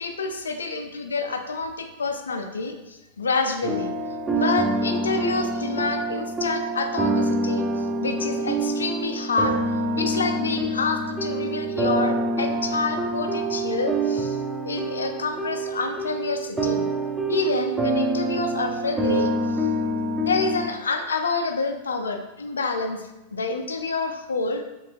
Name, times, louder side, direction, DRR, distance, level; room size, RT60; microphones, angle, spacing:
voice 1, 0.0-3.9 4.3-9.6 10.0-14.4 14.6-16.9 17.3-19.7 20.2-24.6, left 3 dB, 70° left, 6 dB, 0.3 m, -28 dB
sound 1, 3.6-20.7, right 2 dB, 10° right, 0.3 m, -26 dB
4.3 x 2.4 x 2.4 m, 0.96 s
figure-of-eight pair, 90°, 0 cm